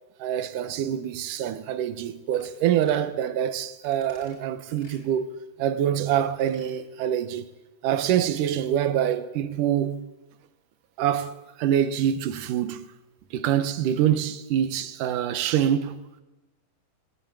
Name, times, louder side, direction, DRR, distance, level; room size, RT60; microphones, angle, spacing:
voice 1, 0.2-7.5 7.8-10.1 11.0-12.9 13.3-16.0, right 10 dB, 85° right, 2.7 m, -25 dB
sound 1, 2.3-2.5 2.8-3.1 3.8-4.4 4.8-5.0 6.2-6.8 7.1-7.2, left 1 dB, 25° left, 6.1 m, -55 dB
20.5 x 16.5 x 9.0 m
omnidirectional pair, 3.6 m